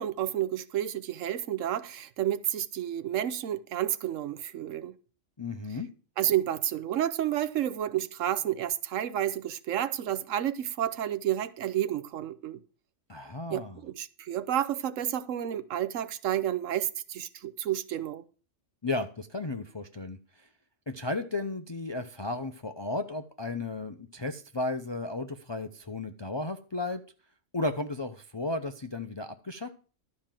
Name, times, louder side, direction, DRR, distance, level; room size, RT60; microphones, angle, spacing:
voice 1, 0.0-4.9 6.2-12.6 13.5-18.2, right 11 dB, 75° right, 1.1 m, -30 dB
voice 2, 5.4-5.9 13.1-13.8 18.8-20.5 20.9-27.0 27.5-29.7, left 2 dB, 35° left, 0.4 m, -34 dB
12.0 x 5.1 x 7.4 m
omnidirectional pair, 1.4 m